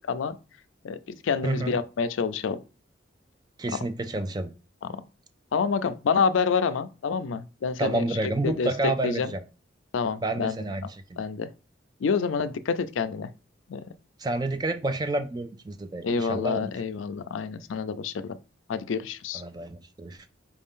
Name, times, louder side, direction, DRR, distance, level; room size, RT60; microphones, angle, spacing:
voice 1, 0.8-2.6 3.7-3.8 4.8-5.0 5.5-8.0 8.4-8.7 9.0-9.3 9.9-10.6 11.2-11.5 12.0-13.3 13.7-13.8 16.0-18.4 18.7-19.4, left 5 dB, 85° left, 0.4 m, -28 dB
voice 2, 1.4-1.7 3.6-4.5 7.8-9.4 10.2-11.2 14.2-16.7 19.3-20.3, right 2 dB, 20° right, 0.4 m, -29 dB
4.7 x 2.6 x 3.6 m
head